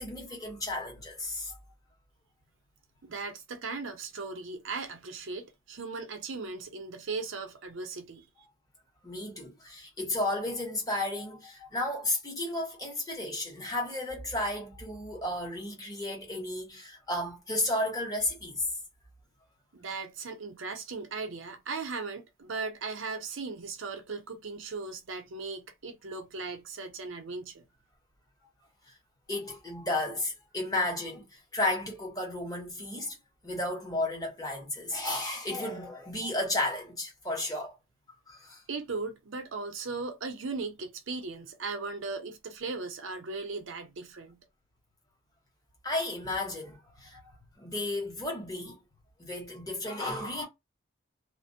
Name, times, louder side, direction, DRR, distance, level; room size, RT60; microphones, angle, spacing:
voice 1, 0.0-1.6 9.0-18.7 29.3-33.2 33.4-37.8 38.3-38.6 45.8-48.8 49.3-50.4, left 1 dB, 20° left, 1.1 m, -33 dB
voice 2, 3.0-8.3 19.7-27.7 38.7-44.4, right 4 dB, 75° right, 0.6 m, -38 dB
2.5 x 2.0 x 2.5 m
head